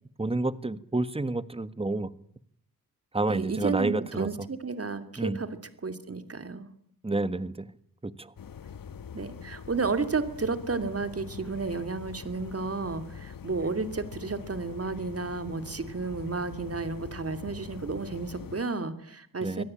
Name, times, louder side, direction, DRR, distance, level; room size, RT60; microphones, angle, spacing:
voice 1, 0.2-2.1 3.1-4.5 5.2-5.4 7.0-7.7 8.0-8.3 19.4-19.6, right 2 dB, 15° right, 15 dB, 1.5 m, -29 dB
voice 2, 3.3-5.6 5.8-6.7 9.1-19.6, right 4 dB, 40° right, 10 dB, 2.8 m, -32 dB
sound 1, 8.4-18.6, left 7 dB, 70° left, 1.4 m, -44 dB
25.5 x 17.5 x 8.9 m, 0.67 s
cardioid pair, 70°, 35 cm